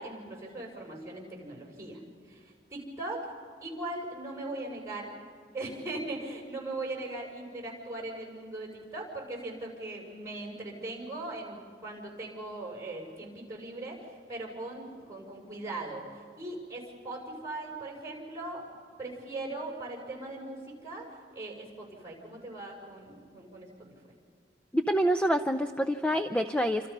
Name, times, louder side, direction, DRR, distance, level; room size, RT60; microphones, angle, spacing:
voice 1, 0.0-2.0 2.3-3.3 3.6-5.1 5.5-18.6 19.0-21.1 21.3-23.7, right 2 dB, 15° right, -1 dB, 6.3 m, -39 dB
voice 2, 24.7-26.9, equal, 5° left, 8 dB, 0.5 m, -27 dB
28.5 x 26.5 x 5.5 m, 2.2 s
head